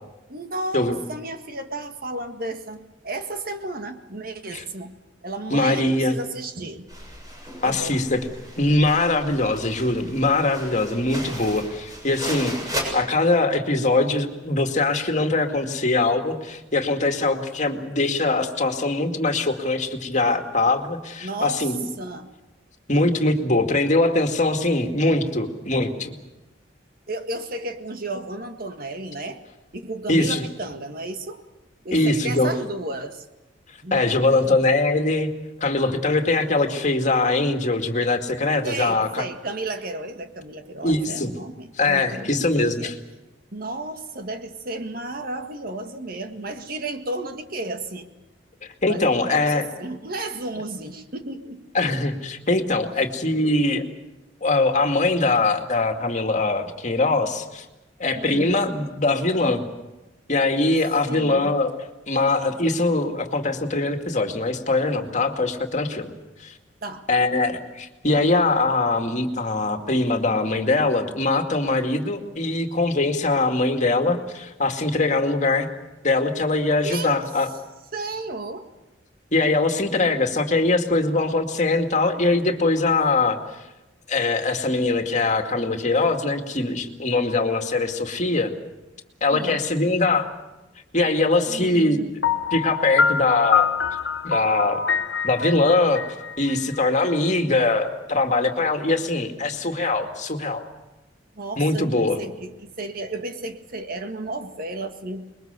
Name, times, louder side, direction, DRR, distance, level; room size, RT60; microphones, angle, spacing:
voice 1, 0.3-4.9 5.2-6.9 7.6-8.0 21.2-22.3 27.1-29.4 29.7-31.4 31.8-33.3 33.8-34.6 38.6-42.9 43.5-48.1 48.9-51.6 58.1-58.5 61.1-61.6 66.8-67.0 76.8-77.2 77.9-78.7 89.3-89.6 91.5-92.1 101.4-105.3, right 2 dB, 55° right, 6 dB, 1.8 m, -33 dB
voice 2, 5.5-6.2 7.6-8.2 8.6-21.8 22.9-26.1 30.1-30.4 31.9-32.5 33.9-35.3 35.6-39.2 40.8-41.3 41.8-42.9 48.8-49.7 51.7-53.8 54.4-57.7 58.0-59.6 60.3-61.7 62.1-66.1 66.4-66.5 67.1-75.7 76.0-77.5 79.3-83.4 84.1-88.5 89.2-90.3 90.9-92.0 92.5-93.7 94.2-94.8 95.2-96.0 96.4-100.6 101.6-102.2, left 2 dB, 40° left, 5 dB, 2.2 m, -22 dB
sound 1, 6.9-12.8, equal, 20° right, 7.1 m, -35 dB
Piano, 92.2-97.1, left 6 dB, 80° left, 1.1 m, -24 dB
27.0 x 22.0 x 6.9 m, 1.0 s
head